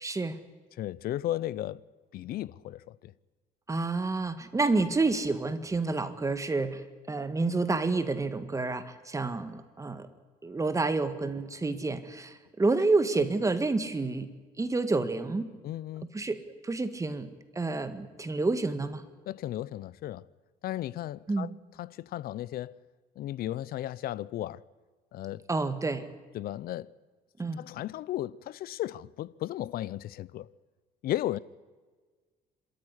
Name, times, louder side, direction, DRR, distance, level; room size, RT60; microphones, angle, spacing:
voice 1, 0.0-0.4 3.7-10.1 10.4-14.3 14.6-15.5 16.1-17.3 17.5-19.0 21.3-21.5 25.5-26.1 27.4-27.6, right 3 dB, 20° right, 1.8 m, -29 dB
voice 2, 0.7-1.8 2.1-3.1 13.1-13.2 15.6-16.1 19.3-20.3 20.6-21.5 21.8-22.8 23.2-24.6 25.1-25.4 26.3-26.9 27.6-30.5 31.0-31.4, left 13 dB, 65° left, 0.6 m, -35 dB
26.5 x 13.5 x 9.9 m
cardioid pair, 110°, 17 cm